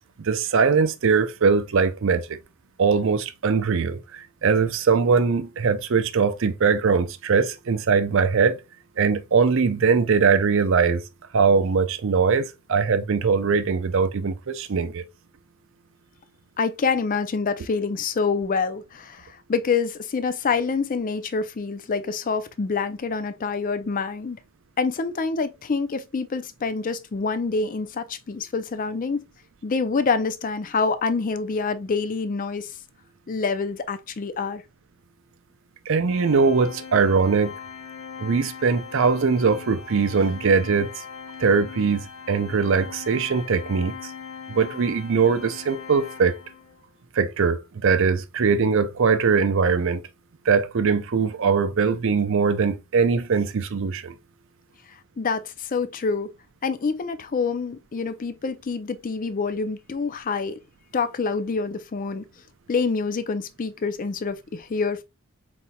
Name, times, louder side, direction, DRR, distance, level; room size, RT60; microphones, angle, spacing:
voice 1, 0.2-2.3 2.8-8.6 9.0-11.0 11.3-15.0 35.9-37.5 38.2-40.9 41.4-43.9 44.5-46.4 47.1-50.0 50.5-54.1, right 5 dB, 60° right, 0.5 m, -21 dB
voice 2, 16.6-24.4 24.8-29.2 29.6-32.8 33.3-34.6 54.9-56.3 56.6-60.6 60.9-62.2 62.7-65.0, left 4 dB, 35° left, 0.4 m, -26 dB
Organ, 36.1-46.8, left 6 dB, 75° left, 1.2 m, -40 dB
4.3 x 4.2 x 2.2 m
head